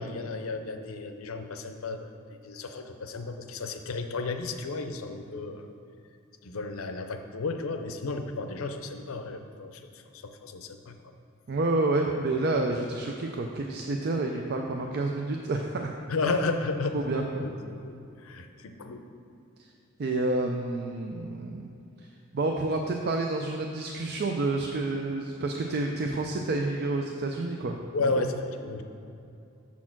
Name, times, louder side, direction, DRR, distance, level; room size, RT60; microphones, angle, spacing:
voice 1, 0.0-2.1 2.4-5.7 6.4-9.8 10.2-10.9 16.1-17.0 17.4-17.5 17.8-19.0 27.9-28.8, left 3 dB, 85° left, 7 dB, 0.6 m, -33 dB
voice 2, 11.5-15.9 16.9-17.5 20.0-21.7 22.3-28.2, right 2 dB, 50° right, 2 dB, 0.4 m, -29 dB
7.2 x 4.4 x 5.9 m, 2.6 s
head